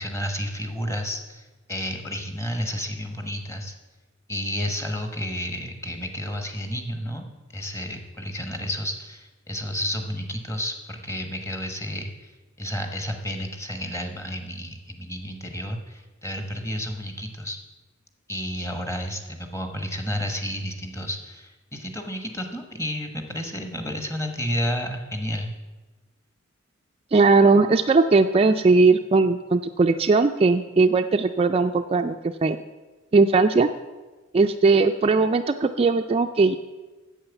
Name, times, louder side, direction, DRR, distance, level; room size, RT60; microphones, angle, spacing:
voice 1, 0.0-3.8 4.3-12.3 12.6-17.6 18.3-25.5, equal, 15° left, 5 dB, 1.1 m, -31 dB
voice 2, 27.1-32.2 32.4-32.6 33.1-33.7 34.3-36.6, right 3 dB, 30° right, 6 dB, 0.3 m, -19 dB
8.8 x 7.9 x 7.0 m, 1.2 s
head